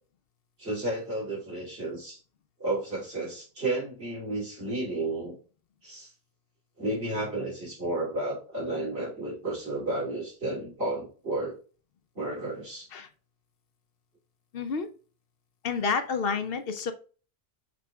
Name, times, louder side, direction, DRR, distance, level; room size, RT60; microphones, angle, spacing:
voice 1, 0.6-2.2 2.6-5.4 5.8-6.1 6.8-11.6 12.1-12.9, right 2 dB, 75° right, -6 dB, 3.0 m, -32 dB
voice 2, 14.5-14.9 15.6-16.9, left 5 dB, 70° left, 9 dB, 0.8 m, -29 dB
6.1 x 3.4 x 2.2 m, 0.37 s
omnidirectional pair, 1.1 m